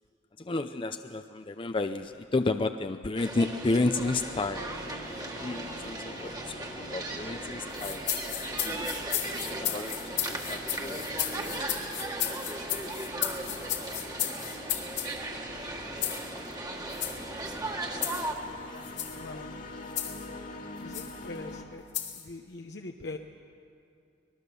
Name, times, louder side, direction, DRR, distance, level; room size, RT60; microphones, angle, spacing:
voice 1, 0.4-4.7 5.4-8.0 8.6-8.9 9.2-11.9 14.5-14.9, left 2 dB, 30° left, 8 dB, 0.5 m, -32 dB
sound 1, 3.2-18.3, right 2 dB, 20° right, 1.7 m, -37 dB
sound 2, 4.0-21.6, left 1 dB, 50° left, 2.0 m, -45 dB
sound 3, 7.7-15.1 16.0-16.3 16.9-17.2 18.0-18.3 18.8-19.2 20.0-20.3 20.9-21.1 21.9-22.2, left 11 dB, 90° left, 2.4 m, -33 dB
voice 2, 19.2-19.5 20.8-21.8 22.1-23.2, left 2 dB, 70° left, 3 dB, 0.9 m, -42 dB
25.5 x 19.5 x 6.9 m, 2.4 s
head